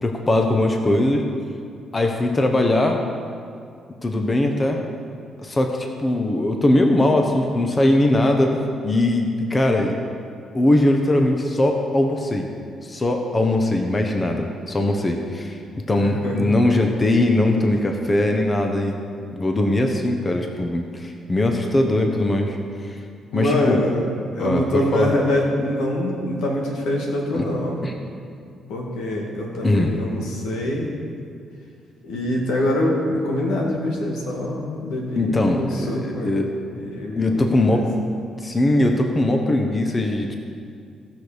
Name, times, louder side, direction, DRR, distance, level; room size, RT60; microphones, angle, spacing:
voice 1, 0.0-1.3 1.9-3.0 4.0-4.8 5.4-10.0 10.5-12.5 12.8-15.6 15.9-19.0 19.3-22.6 22.8-23.0 23.3-23.8 24.4-25.1 27.3-27.4 27.8-27.9 29.6-29.9 35.2-36.5 37.2-37.9 38.4-40.4, left 1 dB, 25° left, 3 dB, 1.1 m, -20 dB
voice 2, 16.0-16.5 22.1-22.2 23.3-24.0 24.3-27.9 28.7-30.9 32.0-36.3 36.8-37.8, left 1 dB, 85° left, -1 dB, 2.1 m, -24 dB
17.0 x 6.4 x 5.1 m, 2.4 s
cardioid pair, 90°, 0 cm